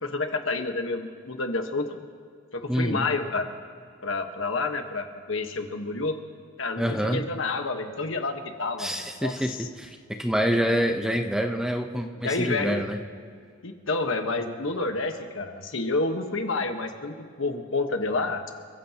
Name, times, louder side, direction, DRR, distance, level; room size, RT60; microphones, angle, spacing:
voice 1, 0.0-1.9 2.5-3.5 4.0-6.1 6.6-9.7 12.2-12.8 13.6-18.5, left 3 dB, 70° left, 5 dB, 1.4 m, -29 dB
voice 2, 2.7-3.1 6.8-7.2 8.8-13.0, equal, 5° right, 4 dB, 0.8 m, -27 dB
29.0 x 15.5 x 3.0 m, 2.3 s
head